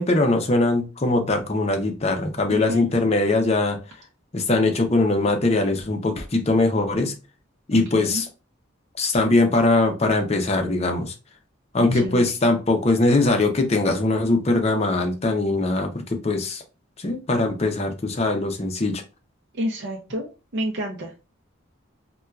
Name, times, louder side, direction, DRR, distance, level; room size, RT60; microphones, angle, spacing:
voice 1, 0.0-3.8 4.3-7.1 7.7-8.3 9.0-11.1 11.7-16.6 17.0-19.0, left 2 dB, 30° left, 5 dB, 0.6 m, -21 dB
voice 2, 2.5-2.9 7.7-8.2 11.8-12.2 19.5-21.2, equal, 60° right, 0 dB, 0.6 m, -30 dB
4.2 x 2.2 x 2.3 m, 0.30 s
head